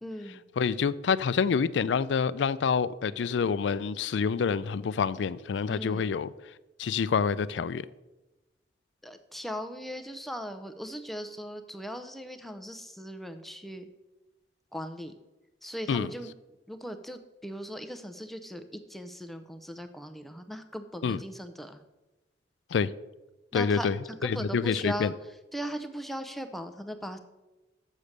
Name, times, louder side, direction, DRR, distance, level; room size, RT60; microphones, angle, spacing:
voice 1, 0.0-0.4 5.7-6.1 9.0-13.9 14.7-15.1 15.6-16.3 16.7-21.8 23.5-25.1 25.5-27.2, equal, ahead, 0.6 m, -39 dB
voice 2, 0.6-6.3 6.8-7.9 15.9-16.1 21.0-21.2 22.7-22.9 23.5-24.0 24.2-25.1, left 6 dB, 80° left, 0.4 m, -27 dB
7.2 x 6.7 x 6.5 m
head